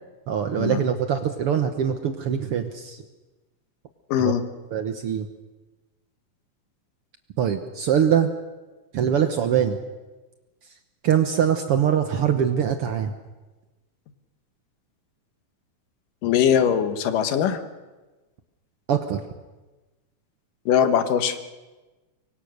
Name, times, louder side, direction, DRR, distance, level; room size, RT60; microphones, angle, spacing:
voice 1, 0.3-3.0 4.2-4.4 4.7-5.3 7.4-8.3 8.9-9.8 11.0-13.1 18.9-19.2, right 8 dB, 65° right, 8 dB, 1.5 m, -23 dB
voice 2, 4.1-4.4 16.2-17.6 20.7-21.4, left 8 dB, 85° left, 10 dB, 2.9 m, -21 dB
25.0 x 23.5 x 6.6 m, 1.2 s
omnidirectional pair, 3.7 m